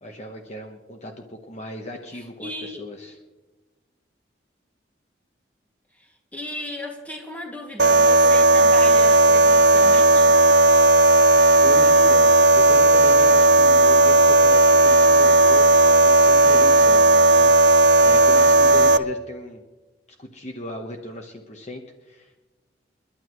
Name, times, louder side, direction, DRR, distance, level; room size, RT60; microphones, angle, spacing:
voice 1, 0.0-3.2 11.6-19.6 20.2-22.4, left 1 dB, 35° left, 3 dB, 1.1 m, -36 dB
voice 2, 2.4-2.8 6.0-10.4, left 1 dB, 10° left, 0 dB, 2.2 m, -35 dB
sound 1, 7.8-19.0, right 3 dB, 60° right, 0.6 m, -14 dB
29.5 x 11.5 x 3.1 m, 1.2 s
head